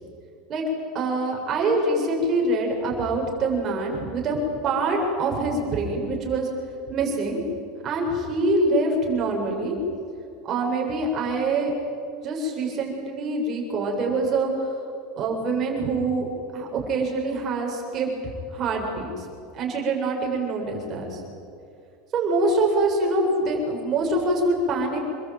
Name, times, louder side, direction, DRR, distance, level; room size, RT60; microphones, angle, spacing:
voice 1, 0.9-4.4 4.6-6.5 6.9-7.4 7.8-9.8 10.4-11.7 12.2-14.7 15.2-16.3 16.5-18.1 18.5-19.2 19.5-21.2 22.1-25.0, right 2 dB, 30° right, 0 dB, 7.4 m, -25 dB
27.5 x 22.5 x 9.3 m, 2.5 s
supercardioid pair, 165°, 0 cm